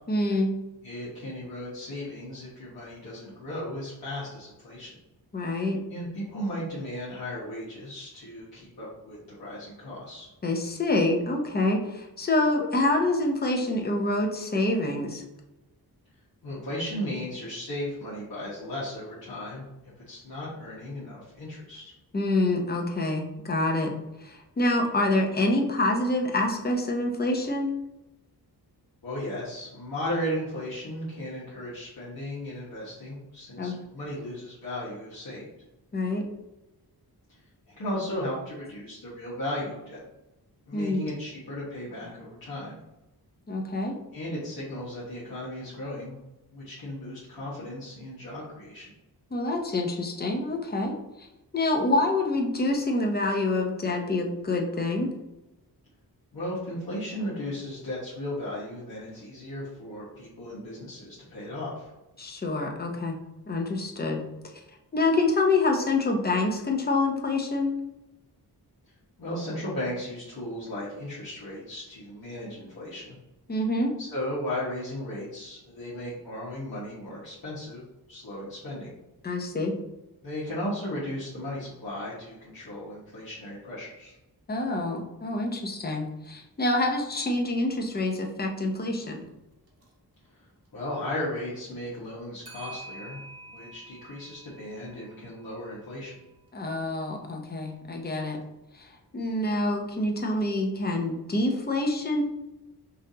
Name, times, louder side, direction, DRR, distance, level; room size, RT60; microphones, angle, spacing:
voice 1, 0.1-0.5 5.3-5.8 10.4-15.2 22.1-23.9 24.2-27.7 33.6-33.8 35.9-36.3 40.7-41.0 43.5-43.9 49.3-51.3 51.5-55.1 62.2-63.2 63.5-64.2 64.9-67.7 73.5-73.9 79.2-79.8 84.5-89.3 96.5-98.4 98.7-102.2, left 2 dB, 25° left, 1 dB, 0.6 m, -26 dB
voice 2, 0.8-5.0 5.9-10.3 16.4-21.9 29.0-35.5 37.3-37.4 37.7-40.0 40.7-42.8 44.1-46.2 46.5-48.9 56.3-61.9 69.2-73.2 74.0-78.9 80.2-84.2 90.3-90.5 90.7-96.2, left 1 dB, 65° left, -9 dB, 1.3 m, -36 dB
Clock, 86.3-86.4 86.8-86.9 89.7-89.9 92.5-96.7, right 3 dB, 40° right, 0.9 m, -48 dB
5.6 x 2.5 x 2.7 m, 0.97 s
wide cardioid pair, 150°, 39 cm